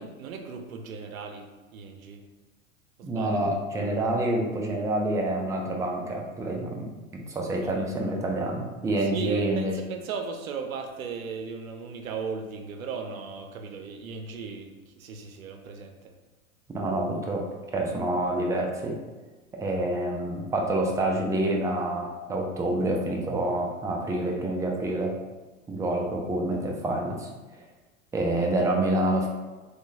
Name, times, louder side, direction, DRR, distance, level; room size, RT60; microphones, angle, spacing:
voice 1, 0.0-2.2 3.0-3.4 7.6-7.8 9.0-16.1, right 5 dB, 85° right, 5 dB, 0.6 m, -37 dB
voice 2, 3.0-9.7 16.7-17.4 17.7-19.0 19.5-25.1 25.7-27.3 28.1-29.3, right 1 dB, 10° right, -1 dB, 0.3 m, -27 dB
3.6 x 3.1 x 2.6 m, 1.2 s
hypercardioid pair, 90°, 41 cm